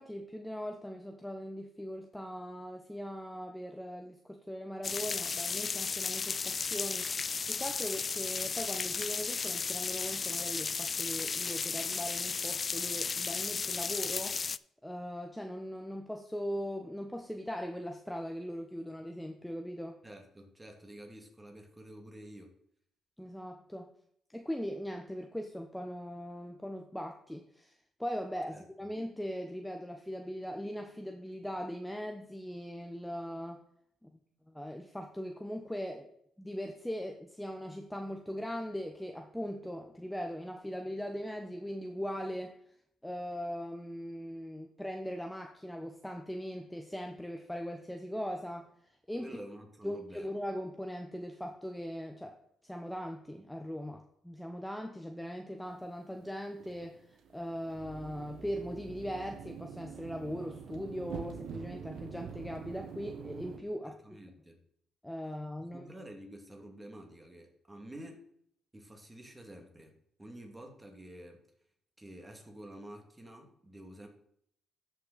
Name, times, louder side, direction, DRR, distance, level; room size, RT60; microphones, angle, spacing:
voice 1, 0.0-14.4 14.8-20.0 23.2-23.9 24.3-27.7 28.0-33.6 34.0-34.1 34.5-36.1 36.4-42.6 43.0-49.4 49.8-52.4 52.6-64.0 65.0-65.9, equal, 5° left, 3 dB, 0.9 m, -40 dB
sound 1, 4.8-14.6, left 5 dB, 40° left, 0.3 m, -34 dB
voice 2, 20.0-22.5 28.5-28.6 49.2-50.3 63.9-64.6 65.6-68.2 68.7-71.4 72.0-74.1, right 1 dB, 15° right, 3 dB, 2.1 m, -49 dB
sound 2, 55.7-63.6, right 7 dB, 75° right, 1.2 m, -46 dB
13.0 x 5.9 x 4.1 m, 0.70 s
cardioid pair, 90°, 0 cm